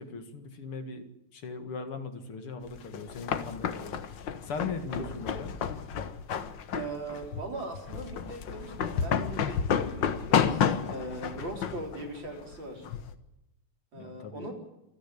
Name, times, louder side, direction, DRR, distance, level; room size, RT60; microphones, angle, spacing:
voice 1, 0.0-4.0 4.4-5.6 13.9-14.4, left 4 dB, 80° left, 7 dB, 2.9 m, -39 dB
sound 1, 2.7-13.1, left 7 dB, 60° left, 1.8 m, -31 dB
voice 2, 6.7-12.8 13.9-14.5, right 2 dB, 55° right, 1 dB, 4.9 m, -40 dB
27.0 x 10.5 x 10.0 m, 0.90 s
omnidirectional pair, 2.4 m